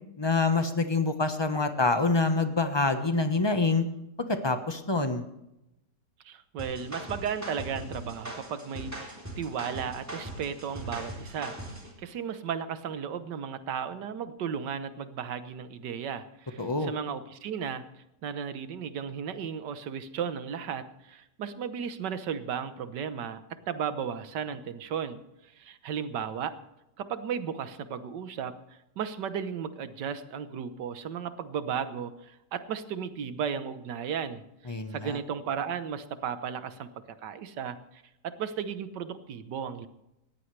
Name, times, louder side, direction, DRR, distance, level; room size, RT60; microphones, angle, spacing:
voice 1, 0.2-3.9 4.3-5.2 16.6-16.9 34.7-35.2, left 3 dB, 20° left, 7 dB, 1.0 m, -26 dB
voice 2, 6.2-11.5 12.0-23.4 23.7-26.6 27.0-28.6 29.0-36.9 37.2-39.9, right 7 dB, 80° right, 11 dB, 1.6 m, -35 dB
sound 1, 6.6-11.9, right 1 dB, 10° right, 3.5 m, -40 dB
19.0 x 14.5 x 3.3 m, 0.88 s
omnidirectional pair, 1.8 m